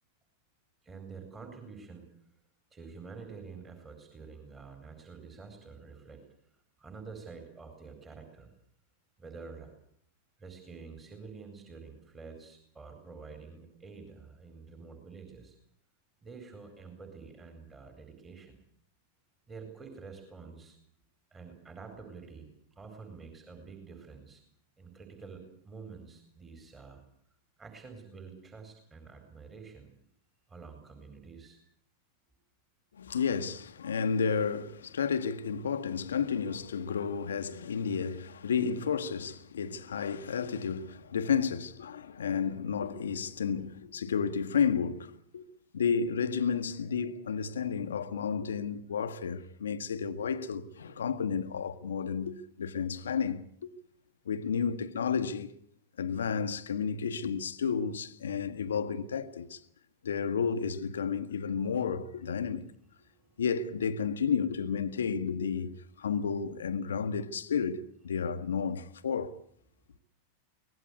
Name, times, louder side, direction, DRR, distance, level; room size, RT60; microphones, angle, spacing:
voice 1, 0.8-2.1 2.7-6.2 6.8-8.5 9.2-9.7 10.4-15.6 16.2-18.6 19.5-20.8 21.3-24.4 24.8-27.0 27.6-29.9 30.5-31.6 63.1-63.4, right 5 dB, 20° right, 4.3 m, -48 dB
voice 2, 32.9-53.7 54.2-55.5 56.0-59.6 60.0-62.7 63.4-69.4, left 6 dB, 65° left, 1.2 m, -32 dB
24.0 x 18.5 x 8.3 m
figure-of-eight pair, 90°, 0 cm